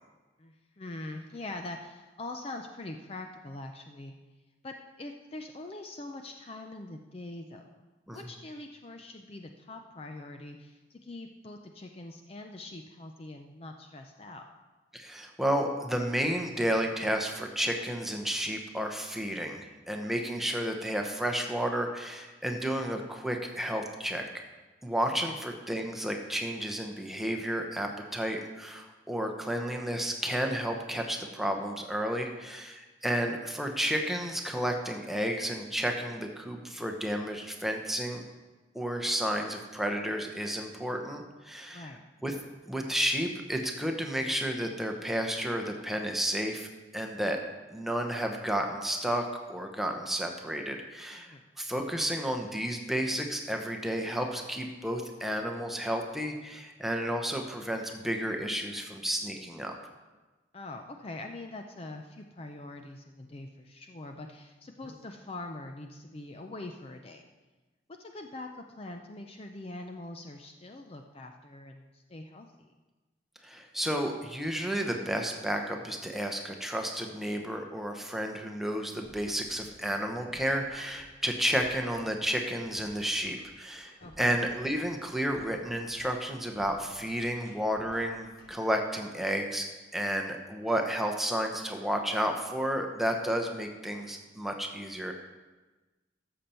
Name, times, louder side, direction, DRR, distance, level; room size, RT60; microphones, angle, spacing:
voice 1, 0.4-4.1 4.6-7.9 8.1-14.5 25.3-25.4 33.1-33.2 41.7-42.1 51.1-51.5 60.5-67.2 68.0-72.7 84.0-84.4, left 2 dB, 30° left, 4 dB, 0.5 m, -43 dB
voice 2, 14.9-24.3 24.8-38.2 38.7-41.9 42.2-42.3 42.7-47.4 47.7-59.7 64.8-64.9 73.4-89.7 89.9-95.1, equal, ahead, 3 dB, 0.9 m, -32 dB
sound 1, 79.0-88.9, left 1 dB, 75° left, 4.0 m, -55 dB
13.0 x 6.9 x 4.4 m, 1.2 s
head